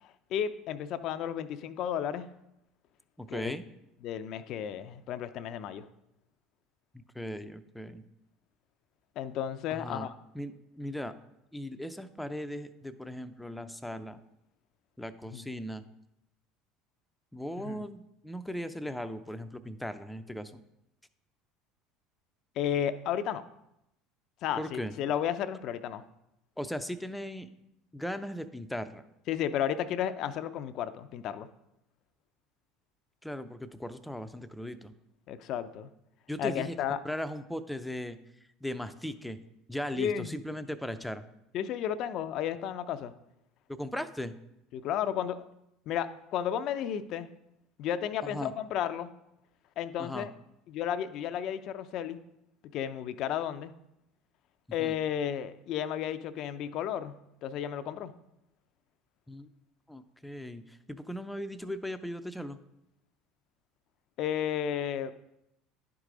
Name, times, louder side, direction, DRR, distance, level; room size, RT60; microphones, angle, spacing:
voice 1, 0.0-2.3 3.3-3.6 4.0-5.9 9.2-10.1 15.3-15.5 17.6-17.8 22.6-23.4 24.4-26.0 29.3-31.5 35.3-35.9 36.4-37.0 40.0-40.3 41.5-43.1 44.7-45.4 45.9-47.3 47.8-49.1 49.8-50.3 50.7-52.2 52.7-53.7 54.7-57.1 57.4-58.1 64.2-65.1, left 9 dB, 60° left, 12 dB, 0.5 m, -33 dB
voice 2, 3.2-3.7 6.9-8.0 9.7-10.1 10.3-11.2 11.5-14.2 15.0-15.8 17.3-20.6 24.6-24.9 26.6-27.5 27.9-29.0 33.2-34.9 36.3-36.7 37.0-38.2 38.6-39.4 39.7-41.2 43.7-44.3 48.2-48.5 50.0-50.3 54.8-54.9 59.3-59.5 59.9-62.6, equal, 5° left, 10 dB, 0.6 m, -38 dB
10.5 x 4.8 x 3.8 m, 0.83 s
hypercardioid pair, 85°, 0 cm